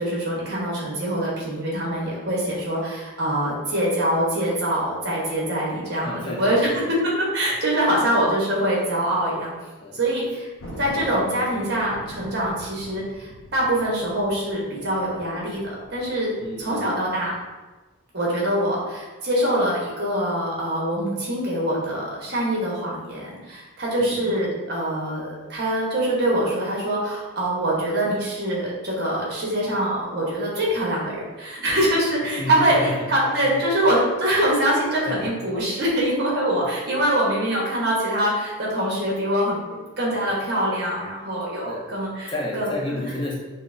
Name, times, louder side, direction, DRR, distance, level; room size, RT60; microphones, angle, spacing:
voice 1, 0.0-9.5 9.9-10.5 10.8-16.3 16.6-17.3 18.1-42.7, right 1 dB, 50° right, -4 dB, 0.9 m, -24 dB
voice 2, 2.0-2.3 5.9-7.0 9.8-10.0 10.6-10.8 16.4-16.9 24.0-24.4 32.4-33.2 33.4-33.6 35.0-35.3 36.6-36.7 40.2-40.3 41.6-41.9 42.3-43.3, left 2 dB, 20° left, -3 dB, 0.4 m, -32 dB
Thunder, 10.6-17.4, equal, 85° left, 0.6 m, -43 dB
5.4 x 2.1 x 2.5 m, 1.2 s
head